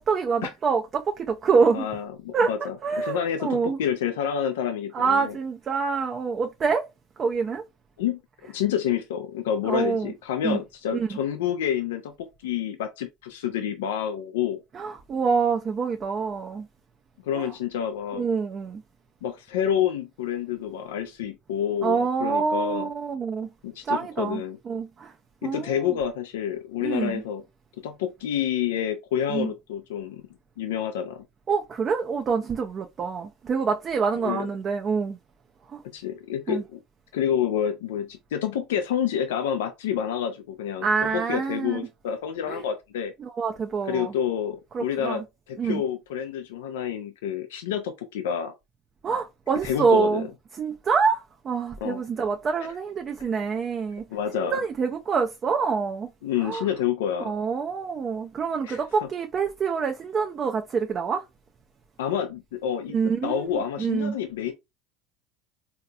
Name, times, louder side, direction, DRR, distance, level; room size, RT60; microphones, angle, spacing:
voice 1, 0.0-1.9 2.3-2.5 2.8-3.8 4.9-6.8 7.2-7.6 9.6-10.1 10.4-10.6 10.9-11.1 14.7-16.7 17.4-17.5 18.1-18.8 21.8-23.5 23.8-25.1 25.4-26.0 26.8-27.2 29.3-29.5 31.5-35.2 35.7-35.8 36.5-36.6 40.8-41.8 42.5-42.6 43.2-44.1 44.7-45.2 45.6-45.8 49.0-50.3 50.6-54.1 54.4-56.1 56.4-56.6 57.2-61.2 62.9-64.2, right 5 dB, 35° right, 0.5 m, -26 dB
voice 2, 1.7-5.3 8.0-8.2 8.5-14.6 17.2-18.2 19.2-22.9 23.6-24.6 25.4-27.4 27.8-30.2 30.6-31.2 34.2-34.5 35.9-36.8 37.1-40.9 41.1-43.1 43.8-45.2 45.5-48.5 49.6-50.3 51.8-52.0 54.1-54.6 56.2-57.3 58.6-58.8 62.0-63.0 63.2-64.5, left 9 dB, 90° left, 0.5 m, -28 dB
3.8 x 2.8 x 2.2 m
supercardioid pair, 100°, 0 cm